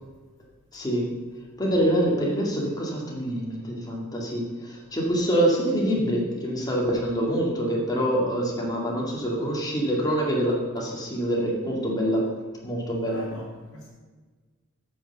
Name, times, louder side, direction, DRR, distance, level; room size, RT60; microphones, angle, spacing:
voice 1, 0.7-1.1 1.6-12.3 12.6-13.2, equal, 20° left, -3 dB, 2.2 m, -25 dB
voice 2, 13.0-13.9, left 1 dB, 65° left, -10 dB, 3.3 m, -42 dB
8.9 x 5.5 x 6.8 m, 1.4 s
head